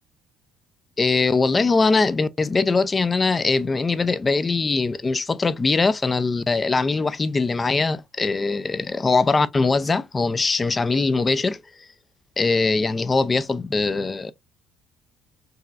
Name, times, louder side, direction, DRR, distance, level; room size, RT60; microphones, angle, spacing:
voice 1, 1.0-11.9 12.4-14.3, left 3 dB, 30° left, 0.5 m, -21 dB
4.6 x 3.0 x 2.4 m
hypercardioid pair, 55°, 0 cm